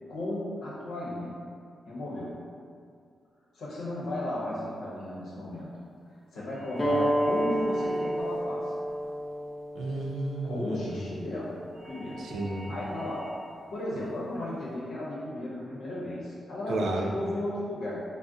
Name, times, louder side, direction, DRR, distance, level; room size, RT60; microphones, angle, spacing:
voice 1, 0.1-1.4 1.9-2.4 3.5-5.7 6.3-8.7 10.4-12.3 12.7-13.3 13.7-18.0, left 1 dB, 90° left, -7 dB, 0.8 m, -35 dB
sound 1, 6.5-8.4 11.7-13.5, equal, 55° right, 0.7 m, -45 dB
sound 2, 6.8-11.9, right 1 dB, 15° left, 0.4 m, -31 dB
voice 2, 9.8-11.0 12.2-12.7 16.7-17.1, right 2 dB, 85° right, -1 dB, 0.4 m, -32 dB
2.4 x 2.0 x 3.8 m, 2.3 s
wide cardioid pair, 165°, 0 cm